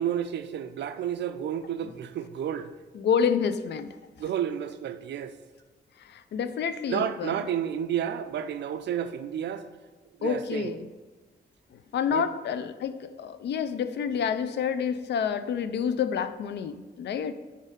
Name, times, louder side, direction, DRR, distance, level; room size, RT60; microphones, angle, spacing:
voice 1, 0.0-2.7 4.2-5.3 6.9-9.7 10.2-10.7 12.1-12.3, right 9 dB, 85° right, 0.4 m, -31 dB
voice 2, 2.9-4.0 6.0-7.4 10.2-10.9 11.7-17.3, left 7 dB, 80° left, 0.4 m, -28 dB
4.9 x 4.2 x 5.2 m
wide cardioid pair, 120°, 17 cm